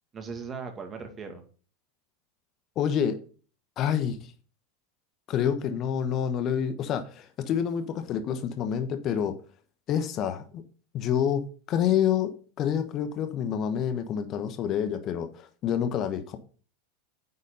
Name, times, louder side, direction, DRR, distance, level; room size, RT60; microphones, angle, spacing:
voice 1, 0.1-1.4, right 5 dB, 25° right, 1.9 m, -38 dB
voice 2, 2.8-3.2 3.8-4.2 5.3-9.4 9.9-10.6 10.9-11.4 11.7-12.3 12.6-16.4, left 9 dB, 45° left, 1.2 m, -27 dB
9.7 x 4.2 x 5.3 m
supercardioid pair, 115°, 0 cm